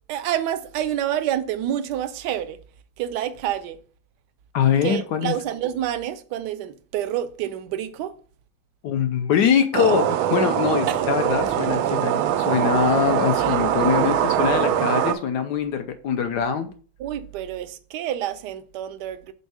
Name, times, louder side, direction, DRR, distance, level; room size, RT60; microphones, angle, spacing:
voice 1, 0.1-2.6 3.0-3.8 4.8-8.1 10.9-11.0 13.4-13.5 17.0-19.3, right 11 dB, 70° right, 1.0 m, -28 dB
voice 2, 4.5-5.3 8.8-16.7, left 7 dB, 75° left, 1.0 m, -23 dB
sound 1, 9.7-15.1, right 10 dB, 90° right, 1.4 m, -22 dB
5.4 x 4.3 x 4.7 m
omnidirectional pair, 2.2 m